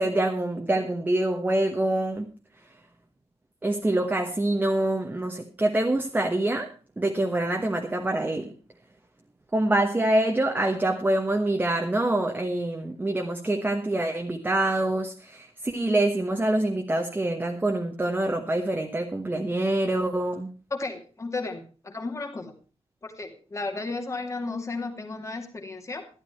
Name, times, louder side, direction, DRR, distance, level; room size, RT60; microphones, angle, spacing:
voice 1, 0.0-2.3 3.6-8.5 9.5-20.5, right 1 dB, 15° right, 3 dB, 1.2 m, -25 dB
voice 2, 20.7-22.5 23.0-26.1, left 3 dB, 30° left, 4 dB, 2.5 m, -34 dB
12.5 x 12.5 x 4.5 m, 0.35 s
wide cardioid pair, 160°, 11 cm